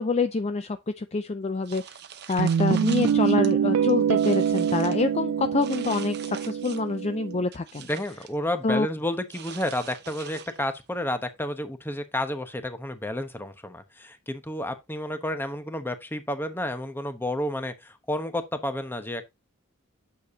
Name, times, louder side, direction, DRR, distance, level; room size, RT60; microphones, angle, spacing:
voice 1, 0.0-2.0 2.3-7.9 8.6-8.9, left 3 dB, 30° left, 0.5 m, -26 dB
sound 1, 1.6-3.5 3.9-5.0 5.6-7.0 7.3-8.4 9.3-10.8, right 8 dB, 50° right, 0.8 m, -43 dB
Guitar, 2.4-7.4, right 8 dB, 75° right, 0.3 m, -25 dB
voice 2, 7.8-19.2, left 1 dB, 10° left, 1.0 m, -31 dB
9.3 x 6.9 x 2.8 m
head